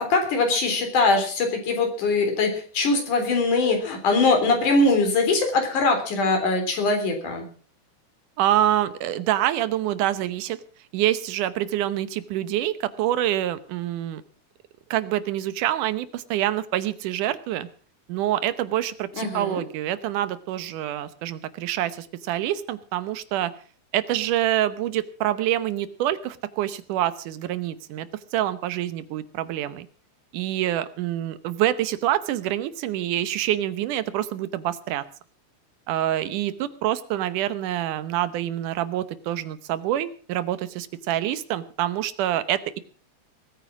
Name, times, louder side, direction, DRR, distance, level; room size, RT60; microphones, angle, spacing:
voice 1, 0.0-7.4 19.2-19.6, left 3 dB, 80° left, 5 dB, 5.0 m, -22 dB
voice 2, 8.4-10.6 10.9-14.2 14.9-17.7 18.1-23.5 23.9-28.1 28.3-29.9 30.3-35.1 35.9-42.8, right 12 dB, 90° right, 14 dB, 2.5 m, -26 dB
19.5 x 9.4 x 6.0 m, 0.41 s
omnidirectional pair, 3.5 m